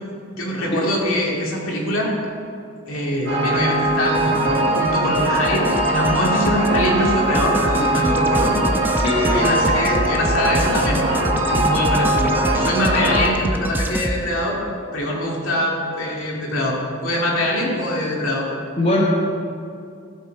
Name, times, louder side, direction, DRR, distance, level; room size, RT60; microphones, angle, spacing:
voice 1, 0.3-2.1 2.9-8.5 9.3-11.0 11.5-14.6 14.9-18.5, left 1 dB, 80° left, -3 dB, 2.3 m, -23 dB
sound 1, 3.3-13.3, right 1 dB, 55° right, 1.7 m, -21 dB
sound 2, 3.5-14.2, right 1 dB, 10° right, 0.4 m, -27 dB
voice 2, 7.8-8.2 9.0-9.6 18.8-19.0, left 1 dB, 25° left, -2 dB, 1.1 m, -22 dB
15.0 x 7.4 x 4.6 m, 2.4 s
head